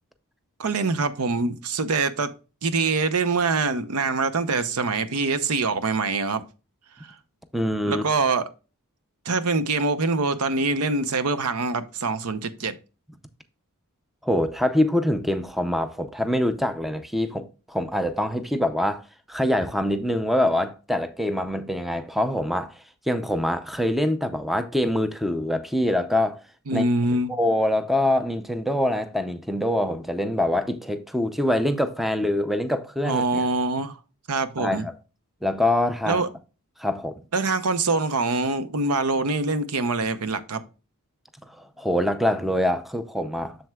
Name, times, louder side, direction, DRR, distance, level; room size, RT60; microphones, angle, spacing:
voice 1, 0.6-2.3 2.6-6.4 7.0-7.1 7.9-8.5 9.2-12.7 26.7-27.4 33.0-34.0 34.3-34.8 36.1-36.3 37.3-40.6, right 3 dB, 85° right, 0.7 m, -24 dB
voice 2, 7.5-8.1 14.2-26.4 26.7-26.8 27.3-33.4 34.6-34.9 35.4-36.2 36.8-37.2 41.5-43.6, left 1 dB, ahead, 0.5 m, -24 dB
7.6 x 6.9 x 2.3 m
head